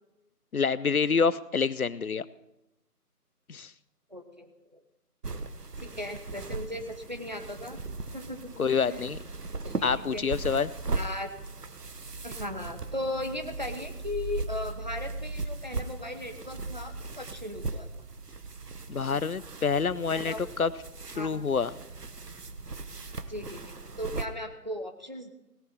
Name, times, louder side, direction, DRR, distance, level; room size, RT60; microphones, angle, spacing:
voice 1, 0.5-2.2 3.5-3.7 8.6-9.2 9.8-10.7 18.9-20.7 21.2-21.7, left 5 dB, 65° left, 18 dB, 0.7 m, -27 dB
voice 2, 4.1-4.8 5.8-7.8 8.1-9.1 9.6-10.2 10.9-11.3 12.2-17.9 20.1-20.4 21.1-21.3 23.3-25.3, left 1 dB, 30° right, 6 dB, 1.0 m, -37 dB
sound 1, 5.2-24.3, right 3 dB, 75° right, 1.2 m, -38 dB
17.0 x 11.0 x 4.3 m, 0.92 s
figure-of-eight pair, 170°, 47 cm